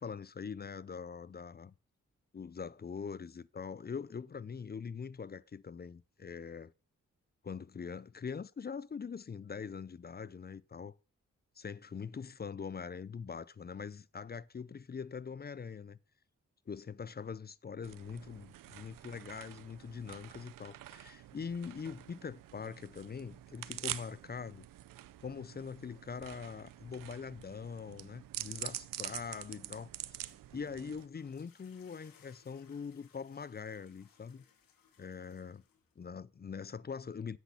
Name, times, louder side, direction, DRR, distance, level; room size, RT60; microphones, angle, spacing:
voice 1, 0.0-1.7 2.3-6.7 7.4-10.9 11.6-16.0 16.7-24.7 25.2-29.9 30.5-34.4 35.0-35.6 36.0-37.4, left 6 dB, 30° left, 0.5 m, -43 dB
sound 1, 17.8-31.1, right 13 dB, 80° right, 0.5 m, -46 dB
sound 2, 30.1-36.1, left 7 dB, 85° left, 1.4 m, -66 dB
7.9 x 6.2 x 5.9 m
supercardioid pair, 40°, 33 cm